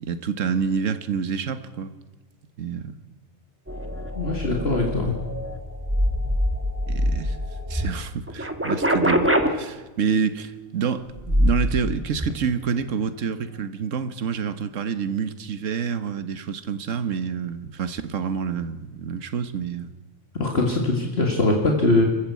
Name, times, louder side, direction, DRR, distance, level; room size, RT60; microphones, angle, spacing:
voice 1, 0.0-1.9 2.6-2.9 6.9-7.4 7.7-19.9, right 6 dB, 70° right, 1.5 m, -28 dB
sound 1, 3.7-7.9 8.3-9.5 11.2-11.8 12.1-12.3, equal, 10° right, 1.9 m, -24 dB
voice 2, 4.1-5.2 20.4-22.0, left 2 dB, 50° left, 2.2 m, -22 dB
26.5 x 15.0 x 8.4 m
omnidirectional pair, 1.4 m